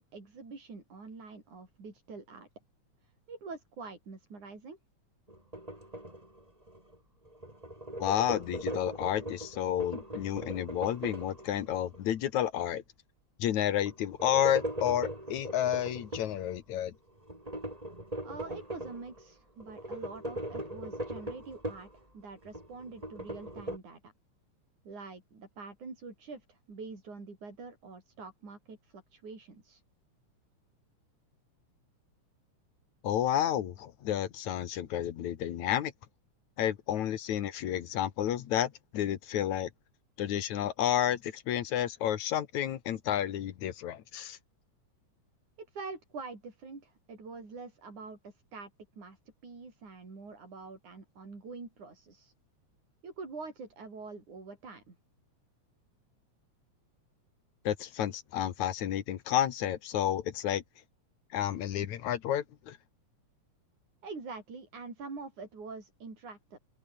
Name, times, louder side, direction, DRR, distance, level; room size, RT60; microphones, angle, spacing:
voice 1, 0.0-2.5 3.3-4.8 18.2-21.9 22.1-24.1 24.9-29.8 45.6-48.7 49.0-52.3 53.0-55.0 64.0-66.6, right 4 dB, 85° right, 7.8 m, -45 dB
sound 1, 5.3-7.0 7.3-12.0 13.9-16.4 17.3-19.2 19.6-22.0 22.4-23.8, right 1 dB, 10° right, 7.4 m, -40 dB
voice 2, 8.0-12.8 13.4-16.9 33.0-35.9 36.6-39.7 40.2-44.4 57.6-60.6 61.3-62.8, left 11 dB, 75° left, 2.8 m, -31 dB
open air
omnidirectional pair, 3.4 m